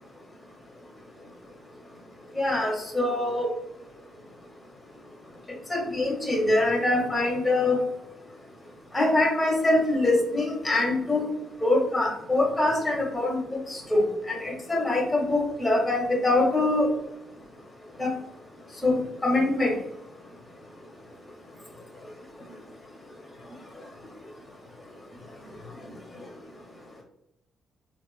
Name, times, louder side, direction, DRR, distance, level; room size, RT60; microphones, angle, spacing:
voice 1, 2.4-3.5 5.7-7.8 8.9-11.3 11.6-13.4 13.7-16.9 18.0-18.1 18.8-19.7, left 2 dB, 15° left, -1 dB, 1.0 m, -24 dB
3.3 x 2.4 x 2.4 m, 0.85 s
cardioid pair, 90°, 0 cm